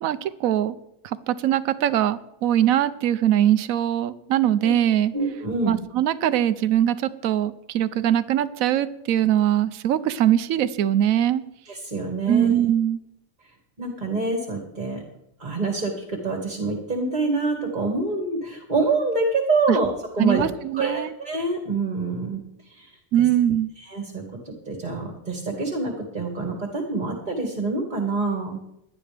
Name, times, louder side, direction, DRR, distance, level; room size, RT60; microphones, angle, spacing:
voice 1, 0.0-0.8 1.0-5.1 5.7-11.4 12.3-13.0 19.7-19.8 20.2-21.1 23.1-23.7, right 11 dB, 90° right, 14 dB, 1.1 m, -22 dB
voice 2, 5.1-5.8 11.8-12.5 13.8-15.0 15.4-20.4 20.7-22.4 22.8-22.9 23.9-28.6, right 3 dB, 35° right, 2 dB, 1.9 m, -26 dB
18.0 x 11.0 x 3.4 m, 0.83 s
omnidirectional pair, 1.4 m